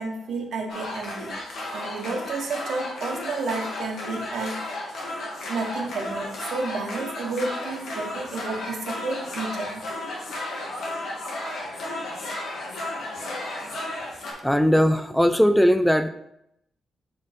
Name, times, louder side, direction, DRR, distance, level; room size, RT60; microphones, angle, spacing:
voice 1, 0.0-1.4 1.7-4.7 5.5-9.8 13.8-14.1, right 3 dB, 70° right, 3 dB, 1.2 m, -31 dB
sound 1, 0.7-14.3, left 1 dB, 80° left, 1.9 m, -33 dB
voice 2, 14.4-16.1, equal, 5° left, 10 dB, 0.3 m, -19 dB
5.3 x 4.2 x 5.1 m, 0.79 s
cardioid pair, 115°, 0 cm